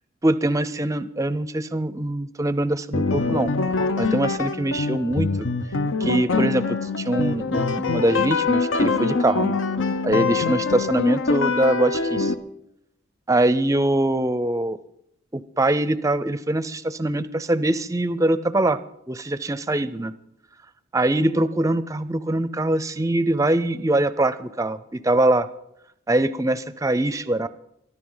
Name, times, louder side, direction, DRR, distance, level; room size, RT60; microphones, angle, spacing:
voice 1, 0.2-3.5 4.0-5.5 6.0-9.6 10.0-12.3 13.3-14.8 15.3-18.8 19.1-20.1 20.9-25.5 26.1-27.5, right 1 dB, 15° right, 15 dB, 0.5 m, -23 dB
sound 1, 2.9-12.3, left 4 dB, 80° left, 0.7 m, -24 dB
23.0 x 11.0 x 3.9 m, 0.77 s
head